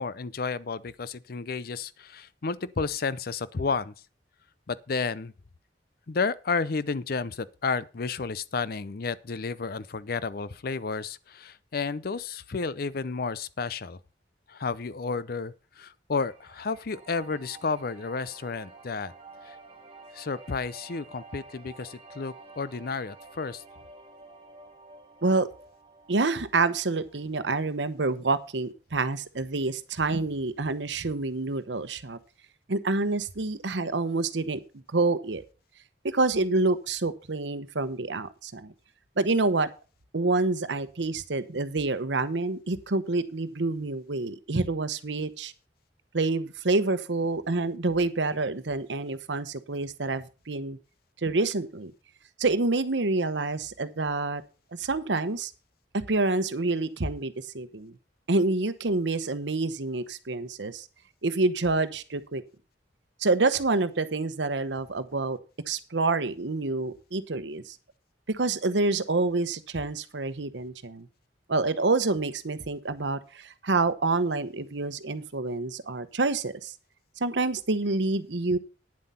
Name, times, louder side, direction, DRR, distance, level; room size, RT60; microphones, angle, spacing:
voice 1, 0.0-3.9 4.7-5.3 6.1-14.0 14.5-19.1 19.4-19.6 20.1-23.6, left 4 dB, 55° left, 0.6 m, -32 dB
sound 1, 16.2-27.3, right 3 dB, 30° right, 2.0 m, -50 dB
voice 2, 26.1-32.2 32.7-34.6 34.9-35.4 36.0-38.7 39.2-39.7 40.1-45.5 46.1-50.8 51.2-51.9 52.4-54.4 54.7-55.5 55.9-57.9 58.3-60.9 61.2-62.4 63.2-65.4 65.7-67.8 68.3-71.1 71.5-76.7 77.2-78.6, right 3 dB, 85° right, 1.0 m, -27 dB
9.8 x 7.6 x 5.6 m
head